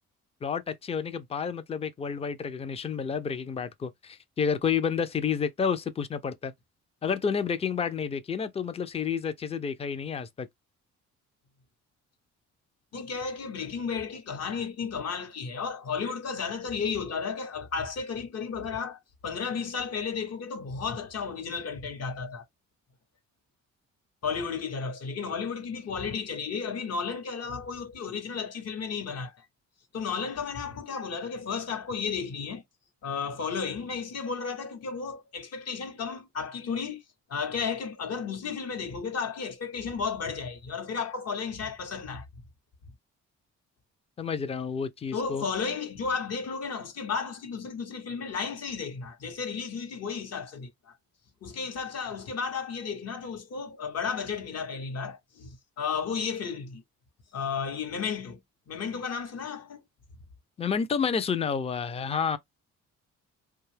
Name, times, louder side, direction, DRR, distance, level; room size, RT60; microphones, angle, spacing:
voice 1, 0.4-6.5 7.0-10.5 44.2-45.5 60.6-62.4, left 6 dB, 20° left, 0.4 m, -30 dB
voice 2, 12.9-22.4 24.2-29.4 29.9-32.6 33.0-37.0 37.3-42.2 45.1-50.9 51.4-56.8 57.3-58.4 58.7-59.8, left 5 dB, 55° left, 0.9 m, -33 dB
2.6 x 2.3 x 3.2 m
cardioid pair, 90°, 30 cm